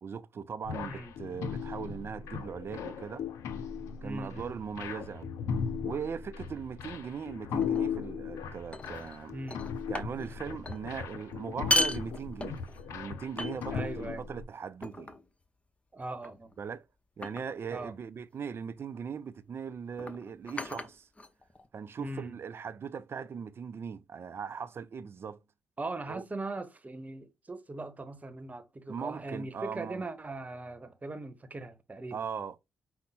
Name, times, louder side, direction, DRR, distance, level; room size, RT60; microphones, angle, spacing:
voice 1, 0.0-3.3 4.0-5.3 5.8-9.3 9.9-12.6 12.9-15.1 16.6-16.9 17.2-21.1 21.7-25.4 26.1-26.2 28.9-30.1 32.1-32.6, right 6 dB, 50° right, 0.5 m, -39 dB
sound 1, 0.6-14.4, left 7 dB, 75° left, 0.6 m, -37 dB
voice 2, 4.0-4.6 9.3-9.7 13.7-14.2 15.9-16.5 17.7-17.9 22.0-22.4 25.8-32.3, right 2 dB, 30° right, 1.0 m, -40 dB
sound 2, 7.6-7.9 8.7-9.2 9.5-10.4 10.6-10.8 11.5-12.9 13.4-14.0 14.8-15.3 16.2-16.5 17.2-17.6 18.8-19.0 19.9-21.7, equal, 25° left, 0.8 m, -35 dB
5.4 x 2.1 x 4.0 m
supercardioid pair, 50°, 5 cm